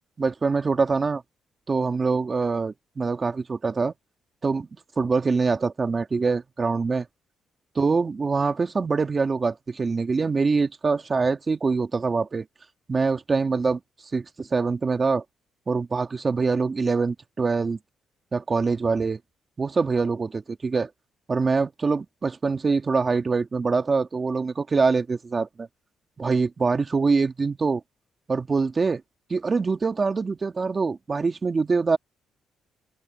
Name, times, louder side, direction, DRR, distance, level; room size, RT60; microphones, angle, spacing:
voice 1, 0.2-1.2 1.7-3.9 4.4-4.7 5.0-7.1 7.8-12.5 12.9-13.8 14.1-15.2 15.7-17.8 18.3-19.2 19.6-20.9 21.3-25.7 26.2-27.8 28.3-29.0 29.3-32.0, right 4 dB, 35° right, 2.2 m, -24 dB
open air
cardioid pair, 90°, 0 cm